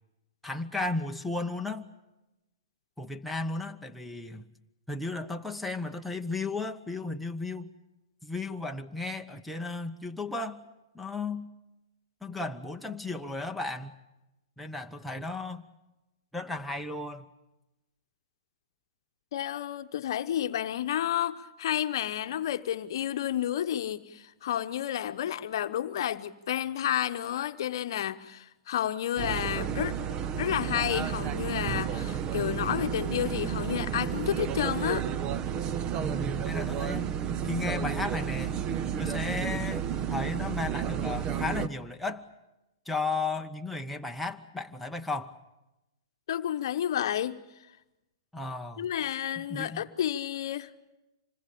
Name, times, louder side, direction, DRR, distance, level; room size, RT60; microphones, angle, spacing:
voice 1, 0.4-1.9 3.0-4.5 4.9-7.7 8.2-10.6 10.9-11.5 12.2-13.9 14.6-15.7 16.3-17.3 36.0-37.1 37.4-38.6 39.0-42.3 42.9-45.4 48.3-48.9 49.4-49.8, left 3 dB, ahead, 1.0 m, -34 dB
voice 2, 19.3-30.0 30.3-35.1 46.3-47.4 48.8-50.7, left 11 dB, 60° left, 1.0 m, -31 dB
sound 1, 29.2-41.7, right 9 dB, 30° right, 0.9 m, -31 dB
26.0 x 20.5 x 8.6 m
hypercardioid pair, 120°, 3 cm